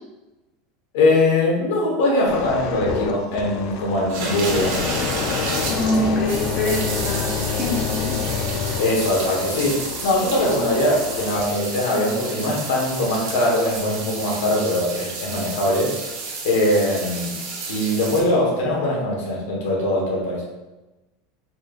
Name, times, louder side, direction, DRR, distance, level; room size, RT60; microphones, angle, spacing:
voice 1, 0.9-4.8 8.8-15.9 16.4-17.3 17.7-20.4, left 1 dB, 80° left, -3 dB, 1.3 m, -21 dB
sound 1, 2.3-13.2 13.8-14.0, left 7 dB, 50° left, 0.3 m, -29 dB
sound 2, 4.1-18.2, right 3 dB, 70° right, 1.1 m, -31 dB
voice 2, 5.7-8.2, left 1 dB, 30° left, -3 dB, 0.8 m, -24 dB
4.3 x 3.3 x 2.4 m, 1.1 s
supercardioid pair, 155°, 0 cm